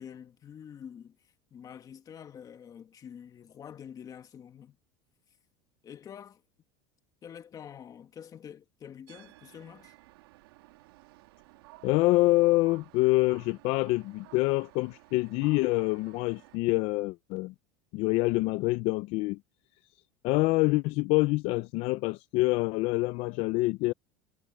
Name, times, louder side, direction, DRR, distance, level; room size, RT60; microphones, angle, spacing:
voice 1, 0.0-4.8 5.8-6.4 7.2-9.9, left 8 dB, 30° left, 1.9 m, -47 dB
sound 1, 9.1-16.6, right 20 dB, 85° right, 2.0 m, -55 dB
voice 2, 11.8-17.5 17.9-19.4 20.2-23.9, left 21 dB, 60° left, 0.6 m, -26 dB
supercardioid pair, 125°, 12 cm